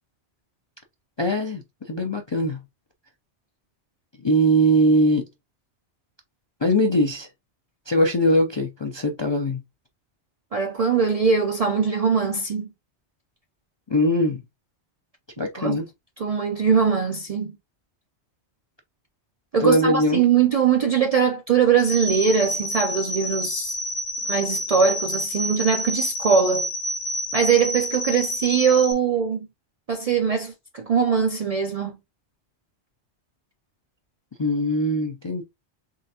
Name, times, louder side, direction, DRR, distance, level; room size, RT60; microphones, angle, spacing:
voice 1, 1.2-2.6 4.2-5.3 6.6-7.3 7.9-9.6 13.9-14.4 15.4-15.9 19.6-20.2 34.4-35.4, equal, 45° left, 0.3 m, -21 dB
voice 2, 10.5-12.7 15.6-15.8 16.2-17.5 19.5-23.8 24.3-26.7 27.3-29.5 29.9-32.0, right 6 dB, 55° right, 0.4 m, -21 dB
sound 1, 21.8-28.9, equal, 75° left, 1.1 m, -29 dB
3.7 x 3.3 x 2.7 m
omnidirectional pair, 1.2 m